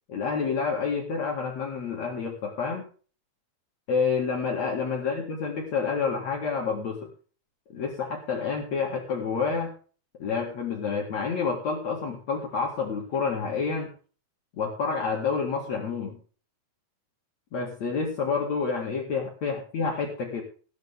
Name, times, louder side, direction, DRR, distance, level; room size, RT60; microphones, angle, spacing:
voice 1, 0.1-2.9 3.9-7.0 7.7-9.7 10.2-13.9 14.6-16.2 17.5-20.4, left 5 dB, 50° left, 0 dB, 3.0 m, -28 dB
18.5 x 9.6 x 3.6 m, 0.39 s
omnidirectional pair, 4.6 m